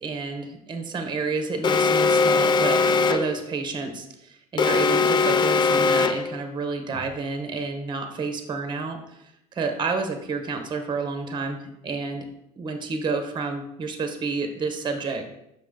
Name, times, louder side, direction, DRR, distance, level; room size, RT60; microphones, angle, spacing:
voice 1, 0.0-9.2 9.5-12.3 12.6-15.3, right 4 dB, 25° right, 6 dB, 1.1 m, -30 dB
Alarm, 1.6-3.4 4.6-6.4, left 4 dB, 25° left, 0.4 m, -20 dB
6.3 x 4.9 x 3.7 m, 0.81 s
supercardioid pair, 105°, 18 cm